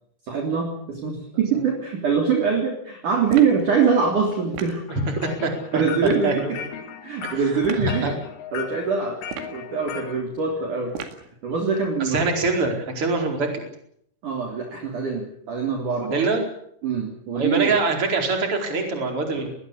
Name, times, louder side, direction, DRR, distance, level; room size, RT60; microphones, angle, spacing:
voice 1, 0.2-4.8 5.7-6.6 7.0-8.1 8.5-9.2 9.5-10.9 11.4-12.3 14.2-16.2 16.8-17.7, right 5 dB, 45° right, 1 dB, 4.3 m, -23 dB
sound 1, 3.3-3.6 4.5-4.8 6.0-6.3 7.6-7.9 9.2-9.6 10.9-11.3, right 8 dB, 85° right, 4.6 m, -35 dB
sound 2, 4.9-10.2, left 9 dB, 85° left, 4.6 m, -37 dB
voice 2, 5.4-5.8 6.2-6.5 7.2-7.4 7.8-8.1 12.0-13.5 16.1-16.4 17.3-19.5, right 3 dB, 30° right, 3 dB, 4.9 m, -24 dB
21.0 x 20.0 x 8.6 m, 0.69 s
omnidirectional pair, 5.5 m